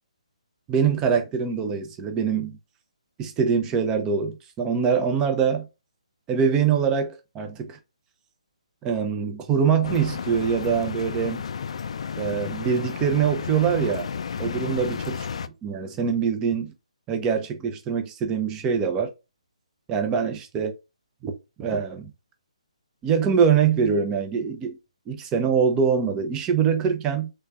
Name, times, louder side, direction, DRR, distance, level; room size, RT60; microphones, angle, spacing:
voice 1, 0.7-2.6 3.2-5.7 6.3-7.8 8.8-11.4 12.2-14.1 14.4-15.2 15.4-16.7 17.1-19.1 19.9-20.7 21.2-21.3 21.6-22.1 23.0-24.8 25.1-27.3, right 6 dB, 15° right, 0.6 m, -24 dB
sound 1, 9.8-15.5, left 6 dB, 55° left, 0.3 m, -32 dB
3.3 x 3.2 x 2.4 m
figure-of-eight pair, 145°, 4 cm